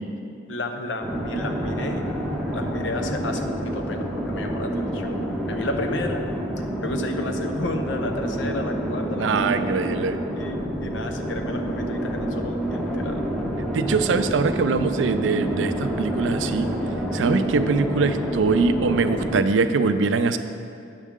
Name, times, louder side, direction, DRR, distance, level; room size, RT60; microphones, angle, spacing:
voice 1, 0.5-2.1 2.5-5.2 5.5-6.2 6.8-9.7 10.3-13.2, left 2 dB, 75° left, 5 dB, 0.7 m, -32 dB
sound 1, 1.0-19.4, right 1 dB, ahead, 0.7 m, -28 dB
voice 2, 9.2-10.2 13.7-16.7 17.1-20.4, right 4 dB, 80° right, 10 dB, 0.4 m, -22 dB
9.1 x 7.2 x 3.6 m, 2.4 s
head